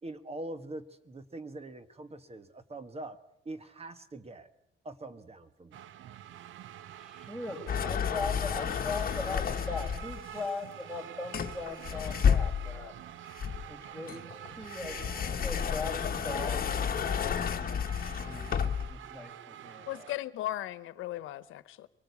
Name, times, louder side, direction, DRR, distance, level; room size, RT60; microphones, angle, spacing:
voice 1, 0.0-3.2 3.4-4.5 4.8-5.8, right 2 dB, 30° right, 11 dB, 1.5 m, -43 dB
sound 1, 5.7-20.2, right 11 dB, 75° right, 0.8 m, -47 dB
voice 2, 6.9-12.9 13.7-17.7 18.2-20.1, left 3 dB, ahead, 5 dB, 4.7 m, -40 dB
sound 2, 7.7-10.2 11.3-12.9 13.4-19.0, left 7 dB, 45° left, 1.3 m, -31 dB
voice 3, 19.9-21.9, left 14 dB, 90° left, 16 dB, 1.0 m, -37 dB
24.0 x 18.0 x 8.3 m, 0.81 s
cardioid pair, 90°, 20 cm